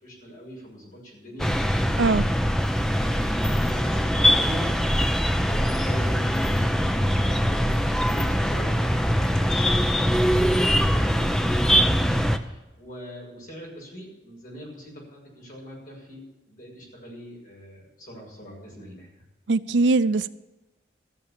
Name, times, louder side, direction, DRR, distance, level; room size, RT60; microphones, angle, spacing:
voice 1, 0.0-2.2 2.9-4.7 5.4-19.1, equal, 45° left, -3 dB, 6.3 m, -42 dB
sound 1, 1.4-12.4, equal, 5° left, 0.6 m, -22 dB
voice 2, 19.5-20.3, right 3 dB, 80° right, 15 dB, 0.5 m, -21 dB
15.0 x 6.9 x 8.8 m, 1.1 s
head